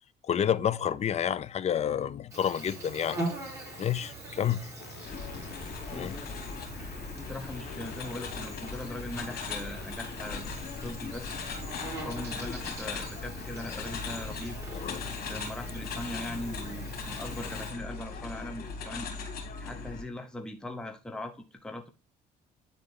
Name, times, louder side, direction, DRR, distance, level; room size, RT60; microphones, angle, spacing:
voice 1, 0.3-3.2 3.8-4.7 5.9-6.1 14.7-15.1, left 9 dB, 40° left, 0.6 m, -29 dB
Insect, 2.3-17.7, right 2 dB, 20° right, 4.2 m, -42 dB
sound 1, 3.7-4.1 4.8-6.7 7.5-9.2 9.6-9.9, left 10 dB, 85° left, 1.2 m, -50 dB
sound 2, 5.0-20.0, left 4 dB, 65° left, 2.5 m, -39 dB
voice 2, 5.9-10.5 10.8-11.4 12.0-14.6 15.3-19.1 19.6-21.9, left 1 dB, 5° left, 0.8 m, -40 dB
9.7 x 4.0 x 3.8 m
cardioid pair, 110°, 17 cm